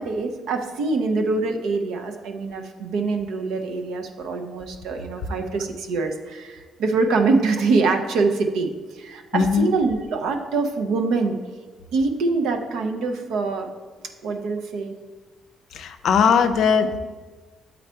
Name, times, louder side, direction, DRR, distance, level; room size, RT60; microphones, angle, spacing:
voice 1, 0.0-8.7 8.9-11.4 11.9-13.7 14.2-14.9, right 3 dB, 85° right, 5 dB, 0.7 m, -24 dB
voice 2, 9.3-9.7 15.7-17.0, left 6 dB, 70° left, 9 dB, 0.5 m, -19 dB
7.6 x 4.0 x 4.4 m, 1.4 s
cardioid pair, 90°, 0 cm